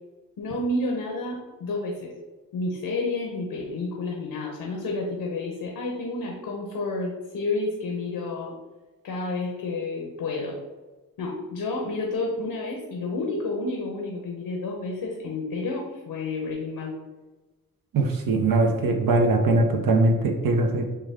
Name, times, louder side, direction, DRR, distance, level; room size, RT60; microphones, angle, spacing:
voice 1, 0.4-2.1 2.5-8.5 9.0-10.6 11.2-16.9, left 2 dB, 85° left, 0 dB, 0.9 m, -30 dB
voice 2, 17.9-20.8, right 2 dB, 75° right, 3 dB, 0.7 m, -21 dB
6.7 x 2.3 x 3.4 m, 1.2 s
cardioid pair, 80°, 34 cm